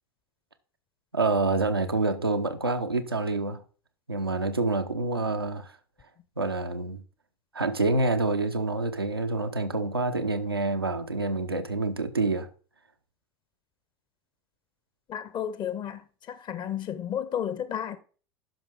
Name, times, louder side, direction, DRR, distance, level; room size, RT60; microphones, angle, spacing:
voice 1, 1.1-3.6 4.1-5.7 6.4-7.0 7.5-12.5, right 3 dB, 90° right, 0.9 m, -27 dB
voice 2, 15.1-16.0 16.3-18.0, left 9 dB, 35° left, 1.1 m, -32 dB
11.5 x 5.4 x 3.6 m
figure-of-eight pair, 75°, 12 cm